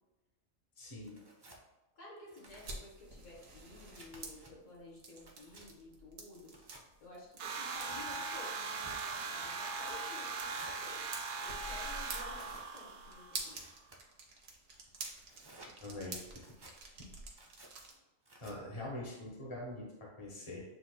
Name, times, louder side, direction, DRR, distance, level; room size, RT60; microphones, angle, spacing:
voice 1, 0.8-1.2 15.8-16.2 18.4-20.6, left 1 dB, 25° left, -3 dB, 1.1 m, -44 dB
Tearing, 1.0-1.6 2.2-2.8 3.3-4.5 5.0-5.7 6.5-6.8 7.5-8.0 8.6-9.6 10.4-10.8 11.3-11.8 12.3-12.7 13.3-14.0 14.7-15.7 16.3-16.7 17.3-17.7 18.3-18.5, right 2 dB, 40° right, 0.3 m, -57 dB
voice 2, 1.9-11.1 11.3-13.6 17.9-18.0, left 1 dB, 70° left, -3 dB, 1.5 m, -53 dB
sound 1, 2.4-17.9, right 3 dB, 90° right, 1.2 m, -49 dB
sound 2, 7.4-13.5, right 4 dB, 65° right, 0.8 m, -40 dB
7.8 x 2.8 x 2.2 m, 1.0 s
omnidirectional pair, 1.4 m